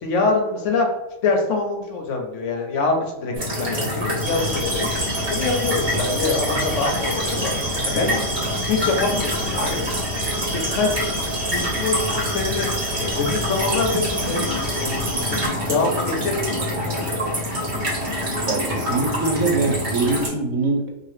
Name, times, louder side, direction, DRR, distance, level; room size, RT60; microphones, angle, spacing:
voice 1, 0.0-0.9 1.2-4.9 5.3-7.5 7.8-8.2 8.7-10.0 10.5-11.1 11.5-12.7 13.0-15.0 15.2-17.4, left 3 dB, 70° left, 2 dB, 1.0 m, -25 dB
sound 1, 3.3-20.3, equal, 40° right, 1.0 m, -26 dB
sound 2, 4.2-15.5, equal, ahead, 0.6 m, -30 dB
voice 2, 18.5-20.9, right 3 dB, 75° right, 1 dB, 1.0 m, -23 dB
2.8 x 2.5 x 3.2 m, 0.93 s
omnidirectional pair, 1.4 m